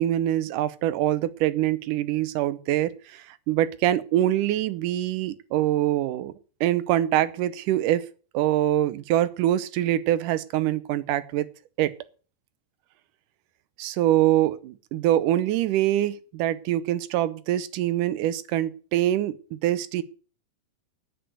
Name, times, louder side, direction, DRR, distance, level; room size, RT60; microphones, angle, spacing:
voice 1, 0.0-6.3 6.6-8.1 8.3-11.5 11.8-11.9 13.8-19.4 19.6-20.0, right 13 dB, 75° right, 15 dB, 2.3 m, -24 dB
10.5 x 9.4 x 8.0 m, 0.38 s
omnidirectional pair, 4.0 m